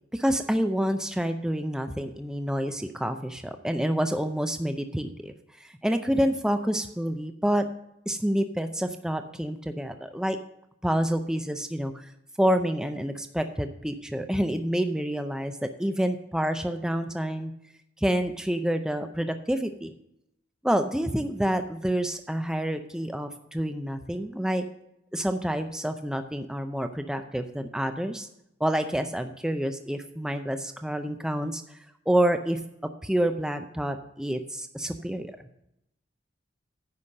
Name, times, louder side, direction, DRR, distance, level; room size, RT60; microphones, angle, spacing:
voice 1, 0.1-5.3 5.6-7.6 8.1-10.4 10.8-12.1 12.4-17.5 18.0-19.9 20.6-24.6 25.1-28.3 28.6-31.8 32.1-32.6 33.0-35.3, equal, 5° right, 7 dB, 0.5 m, -28 dB
9.8 x 5.6 x 6.4 m, 0.80 s
head